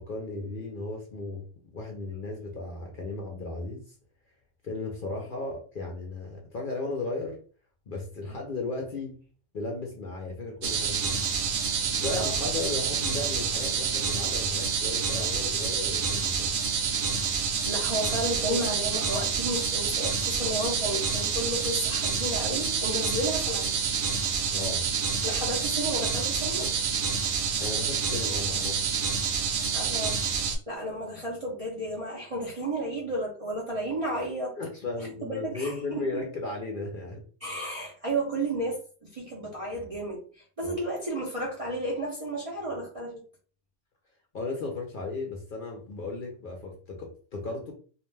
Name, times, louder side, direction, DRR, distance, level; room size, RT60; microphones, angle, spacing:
voice 1, 0.0-1.4 1.7-3.8 4.6-7.4 7.9-9.1 9.5-11.2 11.9-16.5 24.5-24.9 27.6-28.9 34.6-37.2 40.6-40.8 44.3-47.7, left 2 dB, 55° left, 0.6 m, -35 dB
sound 1, 10.6-30.6, right 6 dB, 75° right, 0.9 m, -28 dB
voice 2, 17.6-23.7 25.2-26.7 29.7-34.5 35.2-36.2 37.4-43.2, right 1 dB, 40° right, 0.5 m, -32 dB
2.4 x 2.1 x 3.1 m
omnidirectional pair, 1.3 m